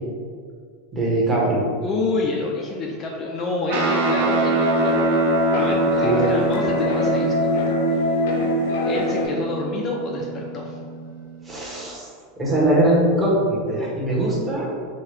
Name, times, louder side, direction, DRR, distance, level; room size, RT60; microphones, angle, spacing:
voice 1, 0.9-1.6 6.0-6.2 11.4-12.1 12.4-14.7, right 1 dB, 15° right, -5 dB, 0.9 m, -21 dB
voice 2, 1.8-5.1 5.5-8.2 8.8-10.8, left 3 dB, 30° left, -1 dB, 0.4 m, -28 dB
Guitar, 3.7-11.3, right 2 dB, 70° right, 0.6 m, -25 dB
sound 1, 3.8-9.3, left 1 dB, 80° left, 0.6 m, -23 dB
4.6 x 2.2 x 3.1 m, 2.1 s
supercardioid pair, 150°, 0 cm